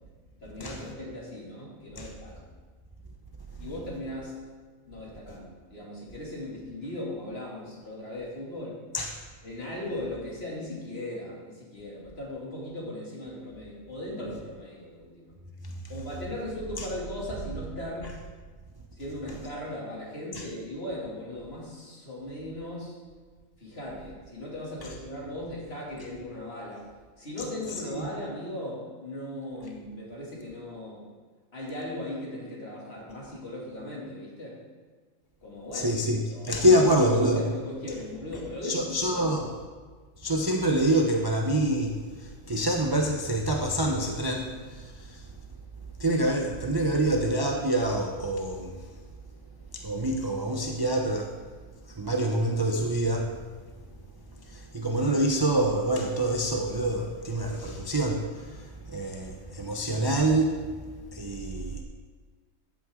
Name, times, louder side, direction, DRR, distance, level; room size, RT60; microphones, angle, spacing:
voice 1, 0.4-2.5 3.6-4.3 4.8-8.8 9.4-15.4 15.9-18.1 19.0-23.0 23.6-26.9 27.2-31.1 31.5-34.6 35.4-36.0 36.3-39.3, left 1 dB, 50° left, -4 dB, 2.9 m, -38 dB
voice 2, 35.7-36.2 36.4-37.4 38.6-39.5 40.2-45.2 46.0-48.7 49.7-51.3 51.9-53.3 54.5-60.6 61.1-61.8, right 1 dB, 25° right, 1 dB, 0.6 m, -26 dB
13.5 x 8.7 x 3.8 m, 1.4 s
omnidirectional pair, 1.4 m